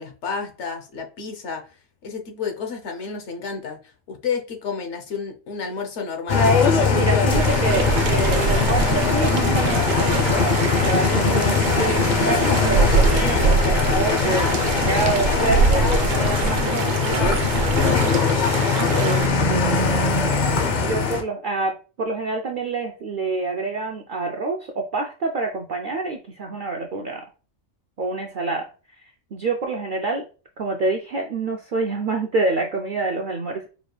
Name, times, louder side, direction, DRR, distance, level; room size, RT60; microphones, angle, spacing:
voice 1, 0.0-1.6 2.0-3.8 4.1-6.5, left 5 dB, 65° left, 3 dB, 1.1 m, -30 dB
sound 1, 6.3-21.2, left 5 dB, 45° left, 0.6 m, -21 dB
voice 2, 6.9-18.2 18.9-20.2 20.6-27.2 28.0-28.7 29.3-30.2 30.6-33.7, right 3 dB, 65° right, 2 dB, 0.5 m, -27 dB
sound 2, 7.3-19.3, right 4 dB, 85° right, 1.1 m, -24 dB
4.9 x 3.2 x 2.3 m, 0.35 s
omnidirectional pair, 1.3 m